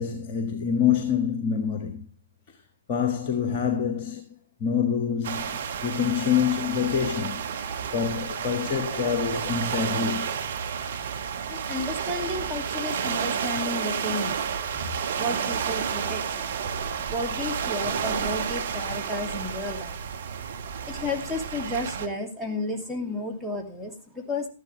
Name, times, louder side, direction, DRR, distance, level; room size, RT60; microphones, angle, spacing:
voice 1, 0.0-2.1 2.9-4.3 4.6-7.4 7.9-10.4, left 7 dB, 35° left, 1.5 m, -26 dB
sound 1, 5.2-22.1, right 7 dB, 55° right, 1.4 m, -31 dB
voice 2, 11.4-14.4 14.7-16.5 17.1-20.0 20.9-24.5, left 2 dB, ahead, 2.5 m, -32 dB
13.0 x 11.5 x 3.3 m
figure-of-eight pair, 115°, 0 cm